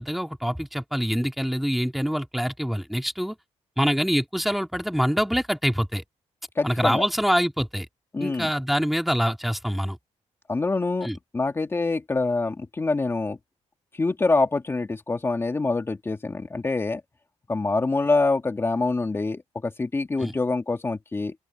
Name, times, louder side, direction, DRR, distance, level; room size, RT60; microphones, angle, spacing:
voice 1, 0.0-3.3 3.8-6.0 6.6-7.9 8.2-10.0 11.0-11.2 20.2-20.3, equal, ahead, 2.5 m, -25 dB
voice 2, 6.6-7.1 8.1-8.5 10.5-13.4 13.9-17.0 17.5-21.3, left 3 dB, 20° left, 2.3 m, -25 dB
open air
cardioid pair, 145°, 12 cm